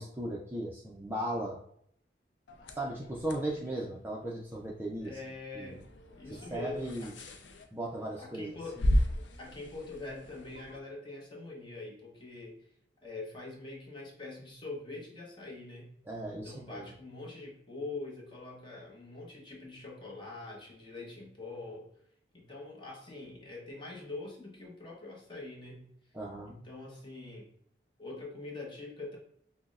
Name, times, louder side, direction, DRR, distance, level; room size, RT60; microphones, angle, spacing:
voice 1, 0.0-1.6 2.8-5.1 5.6-5.8 6.5-7.1 7.7-8.9 16.1-16.9 26.1-26.6, right 1 dB, 10° right, -3 dB, 0.4 m, -37 dB
sound 1, 2.5-10.8, equal, 80° left, 0.5 m, -36 dB
voice 2, 5.0-5.9 6.2-7.3 8.2-8.8 9.4-12.7 13.0-15.9 16.4-21.9 22.3-25.9 26.5-27.5 28.0-29.2, left 2 dB, 25° left, -2 dB, 0.9 m, -44 dB
5.8 x 2.1 x 2.4 m, 0.67 s
head